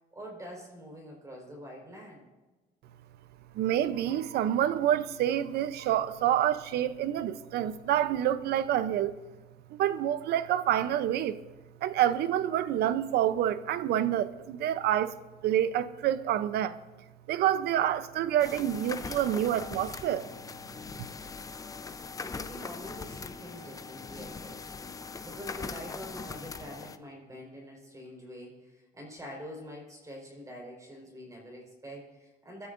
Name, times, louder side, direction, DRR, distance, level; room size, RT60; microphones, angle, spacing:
voice 1, 0.1-2.3 21.9-24.7 25.2-32.7, equal, 20° right, 4.7 m, -45 dB
voice 2, 3.5-9.2 9.7-11.4 11.8-15.2 15.4-16.8 17.3-20.3, right 11 dB, 75° right, 0.8 m, -27 dB
sound 1, 18.4-27.0, left 4 dB, 20° left, 0.6 m, -41 dB
26.0 x 12.5 x 2.6 m
cardioid pair, 110°, 17 cm